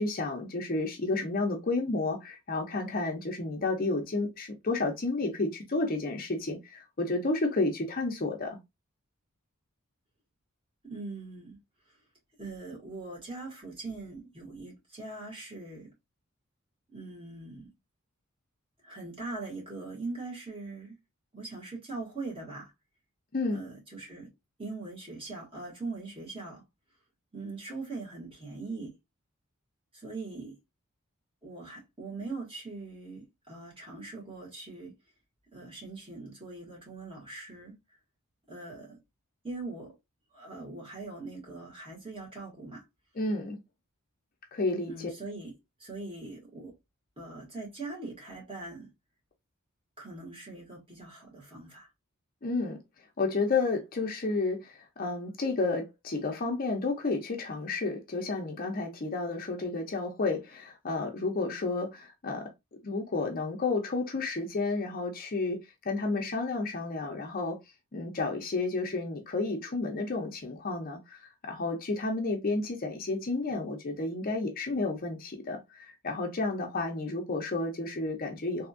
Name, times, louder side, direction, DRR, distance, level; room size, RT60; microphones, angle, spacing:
voice 1, 0.0-8.6 23.3-23.6 43.2-43.6 44.5-45.1 52.4-52.8 53.2-62.5 62.8-67.6 67.9-78.7, left 3 dB, 40° left, 0.6 m, -31 dB
voice 2, 10.8-11.6 11.9-12.0 12.4-15.9 16.9-17.7 18.8-21.0 21.3-22.7 23.5-24.3 24.6-26.6 27.3-29.0 29.9-30.6 31.4-35.0 35.5-37.7 38.5-39.0 39.4-39.9 40.3-42.8 44.9-46.7 47.2-48.9 50.0-51.9, right 3 dB, 25° right, 1.8 m, -41 dB
3.4 x 2.7 x 2.5 m
head